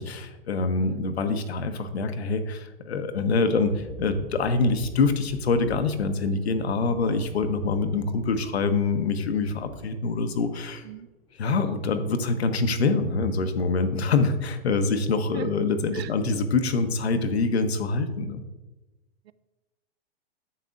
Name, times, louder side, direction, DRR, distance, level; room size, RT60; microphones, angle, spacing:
voice 1, 0.0-10.9 11.4-18.4, left 4 dB, 85° left, 8 dB, 0.9 m, -25 dB
voice 2, 0.8-1.1 10.8-11.1 15.3-15.5 15.9-16.1 19.3-19.4, right 11 dB, 80° right, 16 dB, 0.5 m, -37 dB
sound 1, 3.6-11.0 11.3-11.5, right 1 dB, ahead, 0.7 m, -46 dB
9.7 x 6.9 x 2.5 m, 1.1 s
hypercardioid pair, 125°, 31 cm